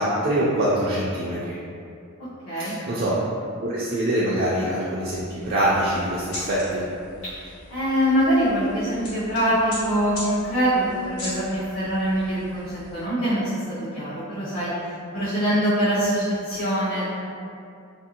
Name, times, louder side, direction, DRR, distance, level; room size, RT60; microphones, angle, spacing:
voice 1, 0.0-1.5 2.6-3.2 3.6-6.9, right 1 dB, 45° right, -8 dB, 0.3 m, -24 dB
voice 2, 2.4-2.8 7.2-17.1, equal, 65° left, -13 dB, 0.7 m, -24 dB
sound 1, 5.0-13.0, left 1 dB, 80° left, 1.2 m, -40 dB
2.7 x 2.5 x 2.7 m, 2.5 s
head